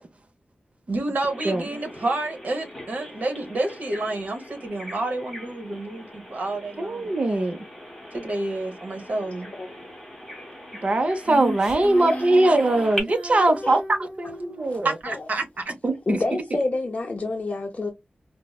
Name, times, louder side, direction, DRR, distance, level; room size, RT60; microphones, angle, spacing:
voice 1, 0.9-7.1 8.1-9.5 14.8-15.8, right 2 dB, 55° right, 1.1 m, -29 dB
Bird vocalization bird call bird song, 1.2-13.0, equal, ahead, 1.9 m, -41 dB
voice 2, 6.8-7.6 10.8-15.0 15.8-16.2, right 2 dB, 40° right, 0.6 m, -21 dB
voice 3, 9.2-9.7 11.8-12.2 13.6-13.8 14.7-14.8 15.0-15.4 15.8-17.9, left 2 dB, 40° left, 0.6 m, -29 dB
Female singing, 11.2-14.8, right 1 dB, 15° right, 1.3 m, -35 dB
4.7 x 2.1 x 2.3 m
wide cardioid pair, 105°, 3 cm